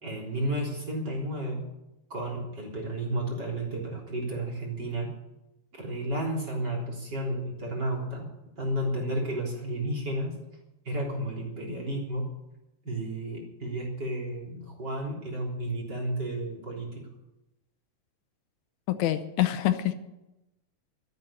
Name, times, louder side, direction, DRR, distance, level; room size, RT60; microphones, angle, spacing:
voice 1, 0.0-1.6 2.1-5.1 5.7-8.3 8.6-10.3 10.9-12.3 12.8-17.1, right 1 dB, 35° right, -2 dB, 4.1 m, -32 dB
voice 2, 18.9-19.9, left 13 dB, 80° left, 10 dB, 2.2 m, -26 dB
13.5 x 9.4 x 8.8 m, 0.93 s
omnidirectional pair, 3.4 m